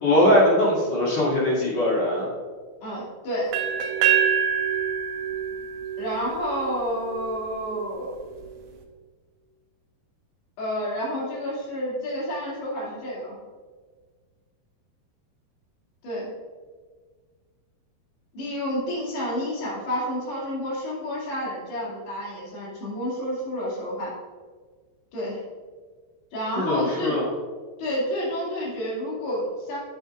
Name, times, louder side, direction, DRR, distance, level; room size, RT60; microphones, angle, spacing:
voice 1, 0.0-2.3 26.5-27.3, left 1 dB, 45° left, -7 dB, 3.5 m, -21 dB
voice 2, 2.8-3.5 6.0-8.1 10.6-13.3 16.0-16.3 18.3-24.1 25.1-25.4 26.3-27.1 27.8-29.8, equal, 75° left, -6 dB, 4.5 m, -29 dB
sound 1, 3.5-7.4, right 7 dB, 75° right, 2.4 m, -26 dB
9.6 x 7.7 x 2.5 m, 1.5 s
omnidirectional pair, 4.7 m